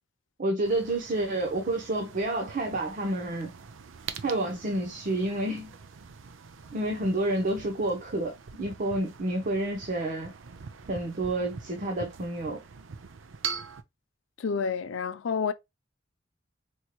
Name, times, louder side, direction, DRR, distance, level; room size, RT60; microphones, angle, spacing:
voice 1, 0.4-3.5 4.2-5.8 6.7-10.3 10.9-12.6, right 1 dB, 45° right, 0.8 m, -29 dB
sound 1, 0.6-13.8, right 6 dB, 90° right, 0.6 m, -43 dB
voice 2, 14.4-15.5, left 5 dB, 80° left, 0.5 m, -29 dB
4.5 x 3.0 x 2.2 m
head